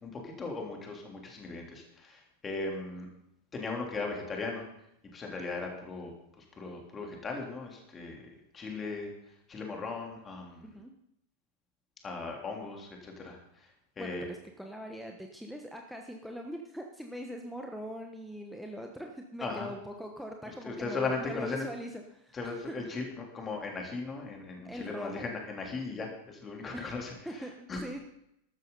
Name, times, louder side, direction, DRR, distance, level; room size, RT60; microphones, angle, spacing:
voice 1, 0.0-3.1 3.5-4.6 5.1-6.1 6.4-8.3 8.5-9.1 9.5-10.8 12.0-13.7 14.0-14.3 19.4-19.7 20.4-21.7 22.3-27.8, left 3 dB, 20° left, 1 dB, 3.4 m, -38 dB
voice 2, 10.6-10.9 14.0-22.8 24.6-25.3 26.7-26.9 27.2-28.1, equal, ahead, 2 dB, 1.2 m, -42 dB
14.0 x 12.0 x 4.1 m, 0.78 s
figure-of-eight pair, 90°, 0 cm